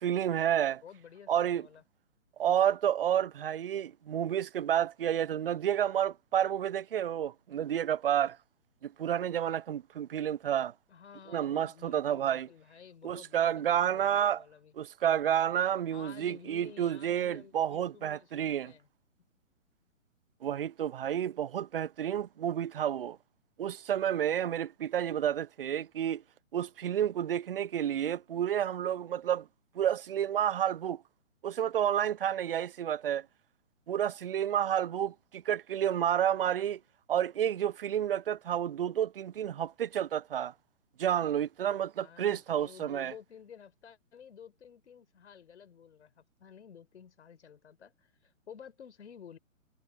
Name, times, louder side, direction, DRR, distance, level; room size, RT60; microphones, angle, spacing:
voice 1, 0.0-0.8 1.3-1.7 2.4-8.4 8.8-10.7 11.3-12.5 13.0-14.4 14.8-18.7 20.4-23.2 23.6-26.2 26.5-29.5 29.7-31.0 31.4-33.3 33.9-36.8 37.1-40.5 41.0-43.1, right 10 dB, 45° right, 0.6 m, -30 dB
voice 2, 0.8-1.8 10.9-14.7 15.9-18.9 42.0-49.4, left 8 dB, 55° left, 4.6 m, -52 dB
figure-of-eight pair, 130°, 40 cm